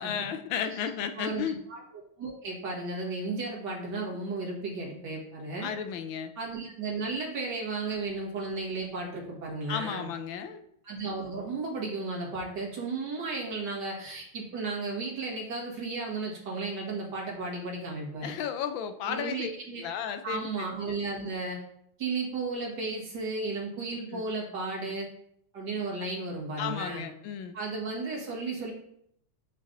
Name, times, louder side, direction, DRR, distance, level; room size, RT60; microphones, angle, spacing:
voice 1, 0.0-1.6 5.6-6.3 9.7-10.6 18.2-19.5 19.8-21.0 23.9-24.2 26.6-27.6, left 8 dB, 75° left, 8 dB, 1.2 m, -34 dB
voice 2, 1.2-1.8 2.2-5.7 6.4-10.1 10.8-18.3 19.0-19.9 20.2-21.6 22.0-25.1 25.5-27.0 27.5-28.7, right 3 dB, 55° right, -3 dB, 2.1 m, -34 dB
9.1 x 3.3 x 3.8 m, 0.72 s
omnidirectional pair, 2.4 m